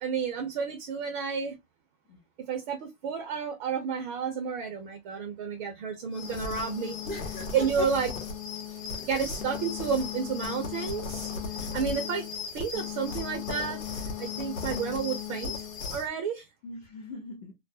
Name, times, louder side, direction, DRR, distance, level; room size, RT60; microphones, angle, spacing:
voice 1, 0.0-1.5 2.5-6.9 7.5-8.1 9.0-11.3 11.6-12.3 12.5-13.8 14.2-15.5 15.9-16.5, right 6 dB, 35° right, 0.6 m, -31 dB
sound 1, 6.1-16.1, left 6 dB, 75° left, 0.8 m, -36 dB
voice 2, 7.0-7.9 8.7-9.1 16.6-17.5, left 1 dB, 20° left, 0.6 m, -40 dB
2.3 x 2.0 x 2.6 m
hypercardioid pair, 140°, 40 cm